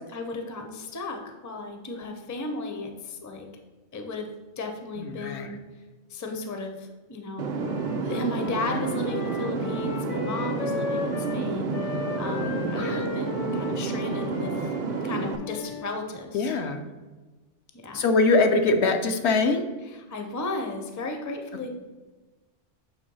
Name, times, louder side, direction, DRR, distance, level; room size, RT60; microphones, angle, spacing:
voice 1, 0.1-3.5 3.9-4.3 4.6-5.6 6.1-7.6 8.0-14.7 15.0-16.5 17.8-18.0 19.8-21.7, left 3 dB, 20° left, 4 dB, 0.5 m, -35 dB
voice 2, 5.0-5.5 8.6-8.8 12.4-13.0 16.3-16.8 17.9-19.7, left 3 dB, 70° left, 5 dB, 0.9 m, -23 dB
sound 1, 7.4-15.4, right 4 dB, 55° right, 0.5 m, -30 dB
Wind instrument woodwind instrument, 7.5-11.4 11.7-16.0, left 4 dB, 90° left, 1.1 m, -36 dB
6.9 x 3.0 x 5.4 m, 1.2 s
omnidirectional pair, 1.2 m